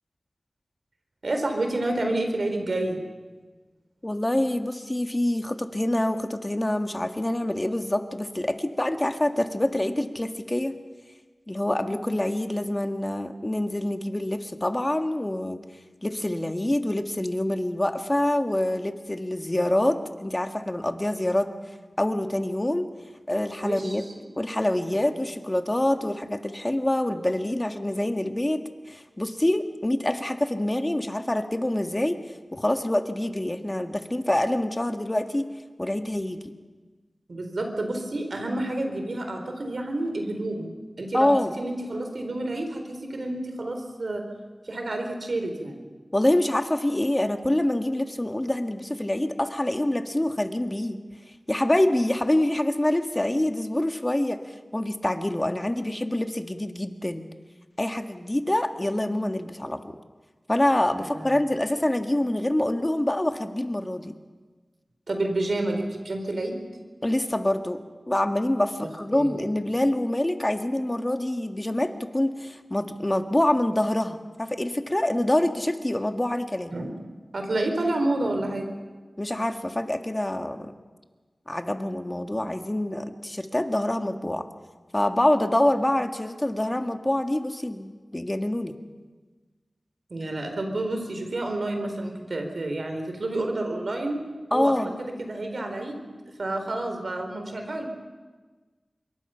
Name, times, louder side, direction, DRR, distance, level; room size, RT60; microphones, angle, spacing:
voice 1, 1.2-3.0 23.6-24.0 37.3-41.3 41.6-44.2 44.7-45.9 61.0-61.3 65.1-66.6 69.1-69.6 76.7-76.9 77.3-78.7 90.1-94.2 94.5-94.9 95.2-96.1 96.4-97.9, right 2 dB, 75° right, 4 dB, 4.1 m, -29 dB
voice 2, 4.0-10.7 11.5-15.6 16.0-22.9 23.3-24.0 24.4-32.2 32.5-35.5 35.8-36.4 41.1-41.6 46.1-51.0 51.5-57.2 57.8-60.0 60.5-64.1 67.0-76.8 79.2-80.7 81.5-84.5 84.9-88.8 94.5-94.9, left 1 dB, 25° left, 6 dB, 1.8 m, -26 dB
26.5 x 22.5 x 5.8 m, 1.3 s
cardioid pair, 45°, 0 cm